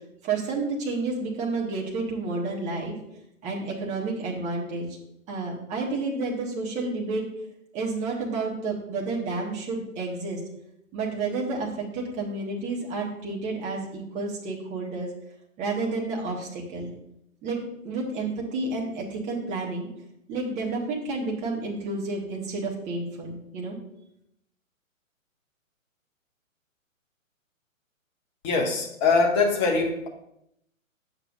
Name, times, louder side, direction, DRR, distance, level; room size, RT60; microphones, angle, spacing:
voice 1, 0.2-3.0 3.4-4.9 5.3-7.2 7.7-10.4 10.9-15.1 15.6-16.9 17.4-19.9 20.3-23.8, right 3 dB, 15° right, -2 dB, 1.4 m, -30 dB
voice 2, 28.4-30.1, left 4 dB, 15° left, 1 dB, 0.8 m, -23 dB
9.7 x 7.2 x 2.5 m, 0.78 s
figure-of-eight pair, 130°, 40 cm